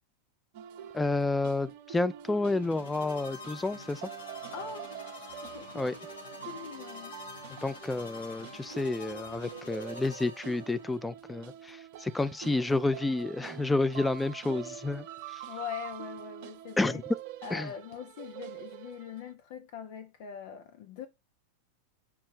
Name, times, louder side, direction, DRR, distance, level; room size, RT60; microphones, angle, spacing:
sound 1, 0.5-19.3, right 10 dB, 45° right, 0.6 m, -46 dB
voice 1, 0.9-4.1 5.7-5.9 7.6-15.0 15.3-15.4 16.8-17.0 17.5-17.7, left 2 dB, 10° left, 0.4 m, -30 dB
sound 2, 2.4-10.9, left 3 dB, 65° left, 1.7 m, -47 dB
voice 2, 4.5-4.9 5.4-5.8 6.5-7.2 15.5-17.0 17.4-21.1, left 7 dB, 50° left, 0.7 m, -42 dB
7.1 x 3.2 x 4.6 m
figure-of-eight pair, 90°, 0 cm